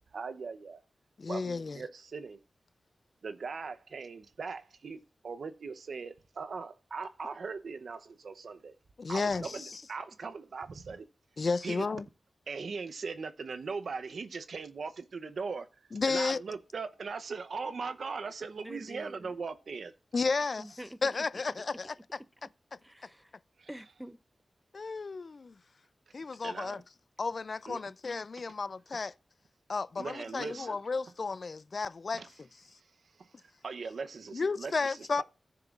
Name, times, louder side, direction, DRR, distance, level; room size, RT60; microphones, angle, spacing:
voice 1, 0.1-0.8 1.3-2.4 3.2-8.8 9.1-11.1 11.6-11.8 12.5-15.7 16.1-19.9 23.6-23.7 26.4-26.8 27.7-27.8 30.0-30.8 32.1-32.3 33.2-35.2, right 4 dB, 80° right, 0.7 m, -40 dB
voice 2, 1.2-1.8 9.0-9.7 11.4-12.0 15.9-16.4 20.1-20.6 21.0-21.9 24.7-25.5 26.1-26.8 27.2-29.1 29.7-32.5 34.3-35.2, left 4 dB, 60° left, 0.3 m, -33 dB
voice 3, 9.2-9.6 18.6-19.3 20.6-21.2 21.6-21.7 22.8-23.3 23.7-24.2, equal, 5° right, 0.6 m, -47 dB
14.5 x 6.7 x 2.4 m
cardioid pair, 60°, 0 cm